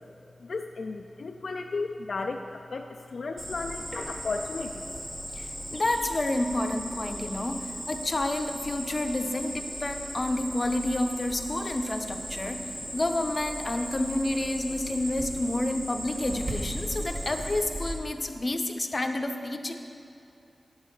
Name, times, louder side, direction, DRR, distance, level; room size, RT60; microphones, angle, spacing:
voice 1, 0.4-4.9, left 3 dB, 70° left, 4 dB, 0.3 m, -34 dB
Cricket, 3.4-17.9, right 1 dB, 45° right, 1.6 m, -37 dB
voice 2, 5.3-19.7, left 1 dB, 40° left, 6 dB, 0.6 m, -29 dB
9.2 x 6.4 x 5.5 m, 2.7 s
wide cardioid pair, 65°, 0 cm